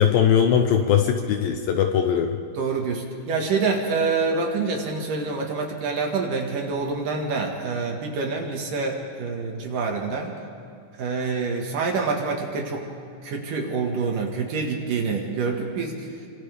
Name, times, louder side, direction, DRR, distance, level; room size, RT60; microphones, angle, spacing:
voice 1, 0.0-2.4, left 8 dB, 75° left, 5 dB, 2.3 m, -20 dB
voice 2, 2.5-10.3 11.0-12.9 13.2-16.0, right 4 dB, 60° right, 1 dB, 3.0 m, -26 dB
29.5 x 25.0 x 3.5 m, 2.5 s
omnidirectional pair, 4.8 m